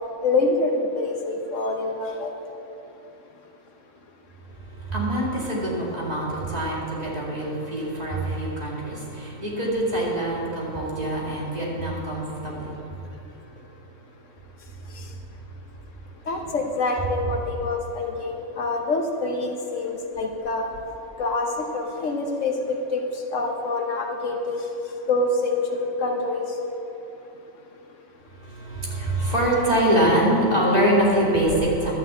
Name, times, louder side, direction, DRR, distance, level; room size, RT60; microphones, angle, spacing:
voice 1, 0.2-2.3 15.0-15.1 16.3-20.7 21.2-23.0 23.3-24.6 25.1-26.5, left 3 dB, 65° left, 3 dB, 1.2 m, -26 dB
voice 2, 4.8-12.8 16.3-16.4 28.3-31.9, right 1 dB, 30° right, -6 dB, 2.6 m, -24 dB
11.5 x 6.6 x 8.0 m, 2.9 s
omnidirectional pair, 1.4 m